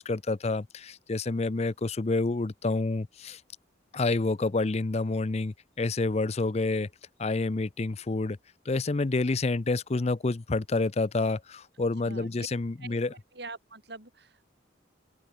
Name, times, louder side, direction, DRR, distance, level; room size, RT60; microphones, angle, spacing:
voice 1, 0.0-3.4 3.9-6.9 7.2-8.4 8.7-13.1, left 3 dB, 35° left, 0.5 m, -28 dB
voice 2, 12.0-12.5 12.8-14.4, right 3 dB, 55° right, 4.6 m, -44 dB
open air
head